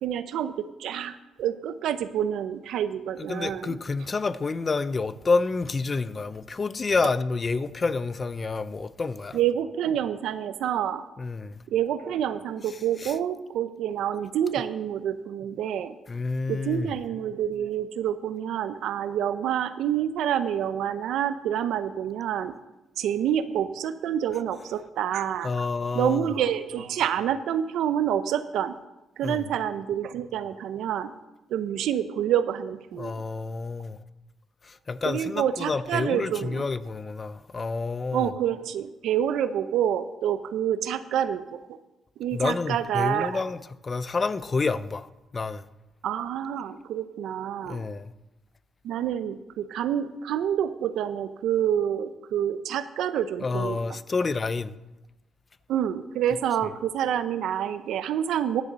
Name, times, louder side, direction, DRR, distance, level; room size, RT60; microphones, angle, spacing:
voice 1, 0.0-3.8 9.3-11.0 11.7-16.0 16.5-22.5 23.0-25.5 25.9-28.8 29.2-31.1 31.5-33.2 35.0-36.6 38.1-41.8 42.2-43.4 46.0-47.9 48.8-53.8 55.7-58.6, right 10 dB, 80° right, 0.7 m, -28 dB
voice 2, 3.2-9.4 11.2-11.6 13.0-13.1 16.1-16.9 25.4-26.3 29.2-29.5 33.0-34.0 34.6-38.3 42.3-45.7 47.6-48.1 53.4-54.7, left 4 dB, 35° left, 0.5 m, -29 dB
10.5 x 6.6 x 7.4 m
cardioid pair, 90°, 0 cm